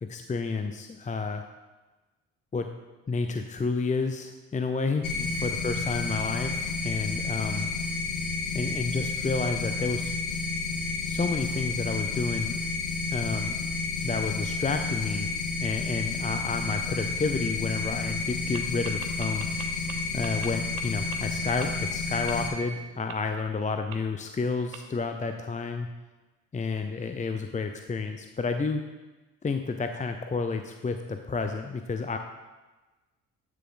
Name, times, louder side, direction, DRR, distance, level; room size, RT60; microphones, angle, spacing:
voice 1, 0.0-1.4 2.5-2.7 3.1-7.7 8.5-10.1 11.1-12.6 13.1-13.6 14.0-15.3 15.6-19.7 20.1-25.9 26.5-28.9 29.4-32.2, left 4 dB, 20° left, 6 dB, 0.6 m, -30 dB
sound 1, 5.0-22.5, left 4 dB, 60° left, 2.0 m, -31 dB
sound 2, 18.5-18.6 18.8-19.9 20.2-20.5 20.8-20.9 21.1-21.2 21.6-21.7 22.3-22.4 23.1-23.2 23.9-24.0 24.7-24.8, right 12 dB, 70° right, 1.1 m, -40 dB
10.5 x 6.8 x 3.9 m, 1.2 s
hypercardioid pair, 60°, 36 cm